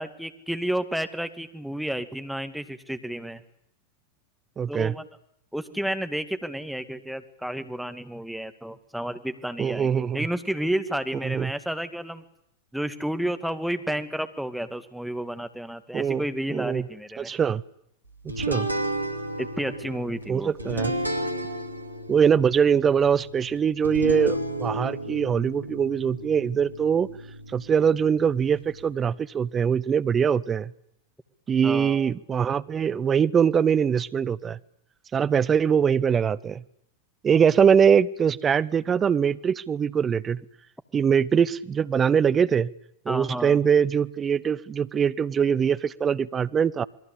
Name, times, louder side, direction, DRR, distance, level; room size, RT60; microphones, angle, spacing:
voice 1, 0.0-3.4 4.7-5.0 5.5-12.2 12.7-17.3 19.4-20.5 31.6-32.1 43.1-43.6, right 1 dB, ahead, 9 dB, 2.2 m, -31 dB
voice 2, 4.6-4.9 9.6-10.3 11.2-11.5 15.9-16.9 17.2-17.6 18.4-18.7 20.3-20.9 22.1-27.1 27.5-30.7 31.5-34.6 35.1-36.6 37.2-40.4 40.9-42.7 43.0-46.8, right 7 dB, 20° right, 17 dB, 0.9 m, -22 dB
sound 1, 18.3-28.9, right 1 dB, 85° right, 2.6 m, -33 dB
27.5 x 21.5 x 8.4 m, 0.76 s
figure-of-eight pair, 90°, 0 cm